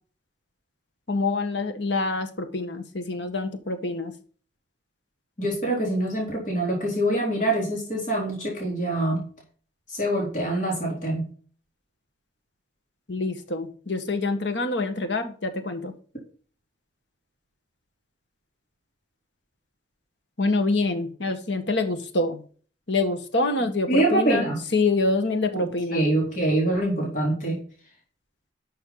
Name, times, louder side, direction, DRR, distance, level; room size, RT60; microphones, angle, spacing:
voice 1, 1.1-4.1 13.1-15.9 20.4-22.4 22.9-24.5 24.7-26.0, left 2 dB, 85° left, 7 dB, 1.7 m, -26 dB
voice 2, 5.4-9.3 9.9-11.3 23.9-24.6 25.5-25.7 25.9-27.6, right 1 dB, 45° left, -3 dB, 3.9 m, -25 dB
11.5 x 6.8 x 4.0 m, 0.42 s
head